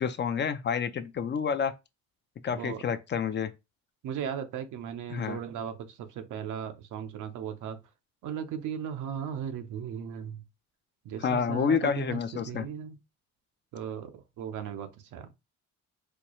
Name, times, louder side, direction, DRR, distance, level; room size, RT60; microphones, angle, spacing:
voice 1, 0.0-1.7 2.4-3.5 5.1-5.4 11.2-12.7, left 6 dB, 40° left, 0.4 m, -29 dB
voice 2, 2.5-2.8 4.0-7.8 8.2-10.4 11.0-12.2 12.5-13.0 13.7-15.3, right 8 dB, 80° right, 0.7 m, -37 dB
4.4 x 2.3 x 3.0 m
cardioid pair, 90°, 30 cm